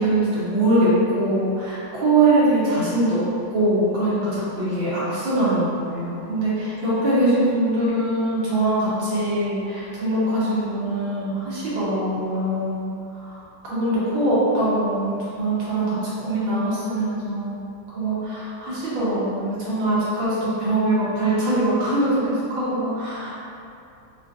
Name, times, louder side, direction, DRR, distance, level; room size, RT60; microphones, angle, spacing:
voice 1, 0.0-3.2 3.5-12.8 13.2-17.6 17.9-23.3, right 1 dB, 80° right, -9 dB, 1.8 m, -22 dB
4.9 x 2.5 x 2.5 m, 2.6 s
omnidirectional pair, 2.1 m